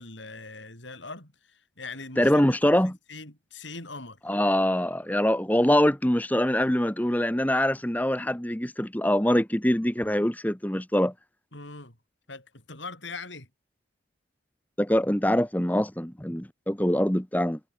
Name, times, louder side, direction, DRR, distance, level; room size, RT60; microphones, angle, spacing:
voice 1, 0.0-2.6 2.8-4.2 11.5-12.0 12.3-13.5, left 3 dB, 70° left, 7.1 m, -41 dB
voice 2, 2.2-3.0 4.3-11.1 14.8-17.6, left 1 dB, 10° left, 1.3 m, -24 dB
head